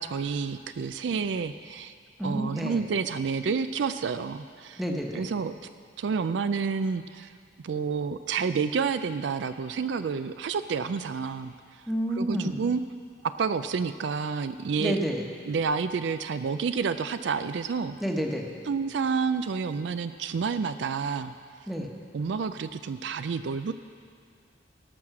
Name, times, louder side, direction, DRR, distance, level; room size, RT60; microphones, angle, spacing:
voice 1, 0.0-1.9 2.2-4.8 5.1-5.7 6.0-7.3 7.6-11.5 12.2-12.8 13.4-15.0 15.4-18.0 18.7-21.3 22.1-23.7, right 5 dB, 65° right, 11 dB, 0.4 m, -29 dB
voice 2, 2.2-2.8 4.8-5.2 11.9-12.6 14.8-15.2 18.0-18.4 21.7-21.9, right 1 dB, ahead, 1 dB, 1.0 m, -29 dB
17.5 x 6.4 x 6.0 m, 2.2 s
head